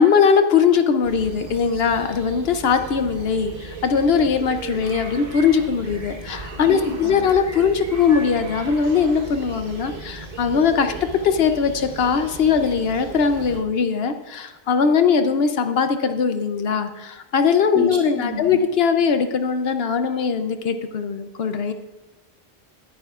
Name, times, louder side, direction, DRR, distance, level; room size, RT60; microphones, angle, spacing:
voice 1, 0.0-10.9 11.2-21.7, left 6 dB, 75° left, 8 dB, 0.9 m, -20 dB
sound 1, 1.0-13.6, right 3 dB, 60° right, 1.4 m, -36 dB
voice 2, 6.6-7.1 17.7-17.9 18.1-18.6, left 2 dB, 25° right, -3 dB, 3.3 m, -28 dB
19.0 x 10.0 x 2.4 m, 1.1 s
omnidirectional pair, 1.0 m